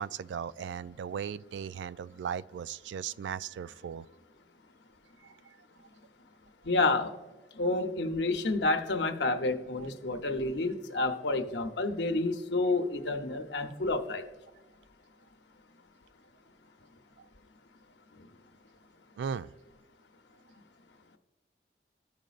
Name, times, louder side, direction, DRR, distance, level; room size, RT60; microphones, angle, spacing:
voice 1, 0.0-4.1 5.2-5.6 9.8-9.9 17.2-17.3 19.2-19.5, right 7 dB, 80° right, 0.3 m, -37 dB
voice 2, 6.6-7.1 7.6-14.2, left 2 dB, 75° left, 0.9 m, -29 dB
14.0 x 5.1 x 2.5 m
head